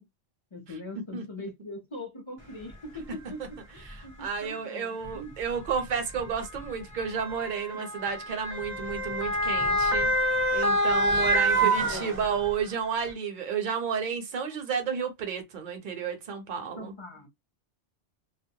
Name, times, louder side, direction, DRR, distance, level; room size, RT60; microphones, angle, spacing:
voice 1, 0.5-5.3 7.7-7.9 11.4-12.2 16.8-17.3, left 1 dB, 35° left, 0.5 m, -42 dB
Motor vehicle (road) / Siren, 2.7-2.8 3.8-4.0 5.0-12.6 13.1-13.2, right 1 dB, 15° right, 0.6 m, -27 dB
voice 2, 4.2-10.1 10.5-16.9, right 6 dB, 50° right, 0.7 m, -31 dB
2.2 x 2.0 x 2.7 m
omnidirectional pair, 1.2 m